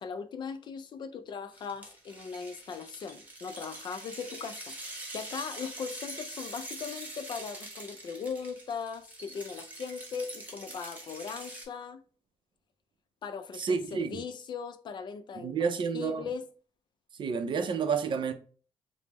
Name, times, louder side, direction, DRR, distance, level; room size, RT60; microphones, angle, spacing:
voice 1, 0.0-12.0 13.2-16.4, left 6 dB, 45° left, 0.4 m, -39 dB
sound 1, 1.5-11.6, right 1 dB, 15° right, 0.9 m, -44 dB
voice 2, 13.6-14.2 15.4-16.2 17.2-18.3, right 6 dB, 50° right, 0.5 m, -30 dB
5.2 x 2.0 x 2.9 m
wide cardioid pair, 170°, 10 cm